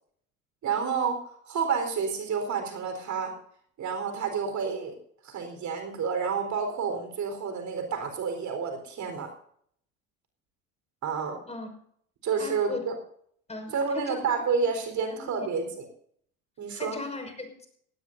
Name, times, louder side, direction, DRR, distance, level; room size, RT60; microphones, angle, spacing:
voice 1, 0.6-3.3 3.8-4.9 5.2-9.3 11.0-11.4 12.2-12.9 13.7-15.8 16.6-17.0, right 5 dB, 45° right, 6 dB, 4.3 m, -29 dB
voice 2, 12.4-12.8 13.5-14.2 15.1-15.5 16.8-17.7, left 3 dB, 15° left, 4 dB, 5.9 m, -38 dB
18.5 x 17.5 x 2.7 m, 0.64 s
hypercardioid pair, 75°, 40 cm